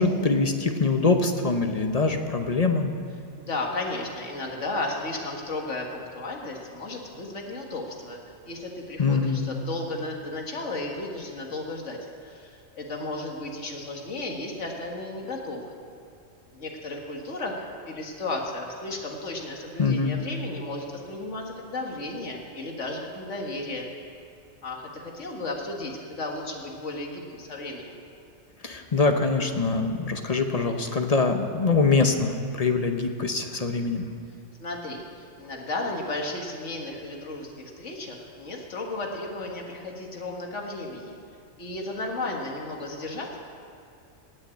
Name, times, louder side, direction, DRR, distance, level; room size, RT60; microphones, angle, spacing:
voice 1, 0.0-2.9 9.0-9.5 19.8-20.2 28.6-34.0, left 4 dB, 35° left, 5 dB, 0.8 m, -24 dB
voice 2, 3.4-8.2 8.5-15.7 16.5-23.9 24.6-28.0 34.6-41.2 41.6-43.4, left 2 dB, 90° left, 0 dB, 2.0 m, -34 dB
18.0 x 6.5 x 8.3 m, 2.5 s
omnidirectional pair, 1.2 m